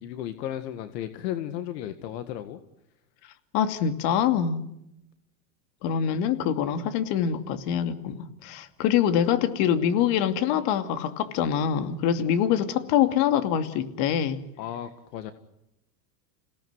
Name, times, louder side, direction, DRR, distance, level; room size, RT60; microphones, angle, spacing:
voice 1, 0.0-2.6 12.2-12.3 14.6-15.3, left 11 dB, 75° left, 9 dB, 2.0 m, -34 dB
voice 2, 3.5-4.6 5.8-14.4, left 9 dB, 55° left, 9 dB, 2.7 m, -24 dB
29.0 x 18.0 x 9.5 m, 0.85 s
supercardioid pair, 120°, 50 cm